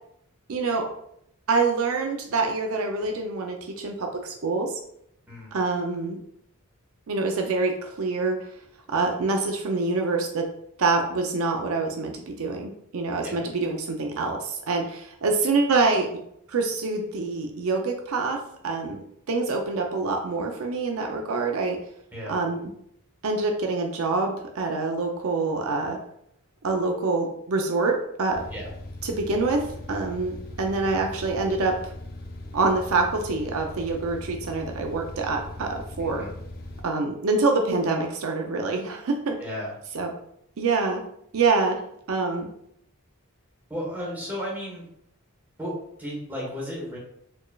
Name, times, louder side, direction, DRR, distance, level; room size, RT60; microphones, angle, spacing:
voice 1, 0.5-0.9 1.5-4.7 5.5-6.2 7.1-8.4 8.9-10.5 10.8-16.1 16.5-21.8 22.3-22.7 23.2-26.0 26.6-28.4 29.0-31.9 32.5-36.2 36.8-39.4 39.9-40.1 40.6-41.0 41.3-41.8 42.1-42.5, right 3 dB, 70° right, 3 dB, 0.5 m, -26 dB
sound 1, 28.3-36.8, left 1 dB, 40° left, 0.5 m, -39 dB
voice 2, 36.0-36.3 39.4-39.7 43.7-44.9 45.6-47.0, equal, 10° right, -5 dB, 1.3 m, -34 dB
4.3 x 3.1 x 2.3 m, 0.73 s
head